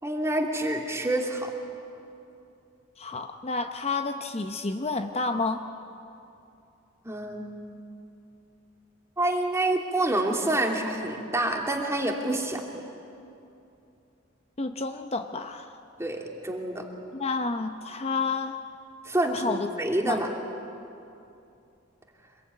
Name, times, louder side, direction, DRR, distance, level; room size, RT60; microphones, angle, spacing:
voice 1, 0.0-1.5 7.0-7.6 9.2-12.6 16.0-16.9 19.0-20.3, right 1 dB, 15° right, 2 dB, 2.7 m, -27 dB
voice 2, 3.0-5.6 14.6-15.8 17.1-18.6 19.3-19.7 20.0-20.2, left 3 dB, 30° left, 7 dB, 0.8 m, -30 dB
26.0 x 21.5 x 9.6 m, 2.7 s
head